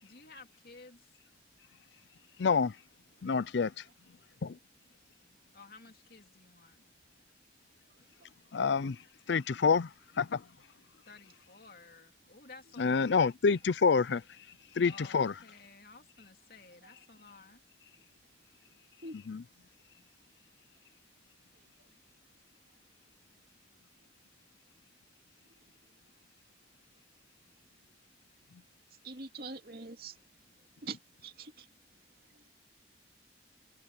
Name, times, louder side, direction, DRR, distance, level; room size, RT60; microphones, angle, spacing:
voice 1, 0.0-1.2 5.5-6.8 11.1-13.2 14.8-17.6, left 3 dB, 55° left, 2.9 m, -54 dB
voice 2, 2.4-2.7 3.2-3.8 4.4-4.6 8.5-9.0 9.3-9.9 10.2-10.4 12.8-14.2 14.8-15.3 19.3-19.4, left 5 dB, 80° left, 0.5 m, -27 dB
voice 3, 29.0-30.2 30.8-31.7 32.3-32.5, right 3 dB, 55° right, 2.7 m, -44 dB
head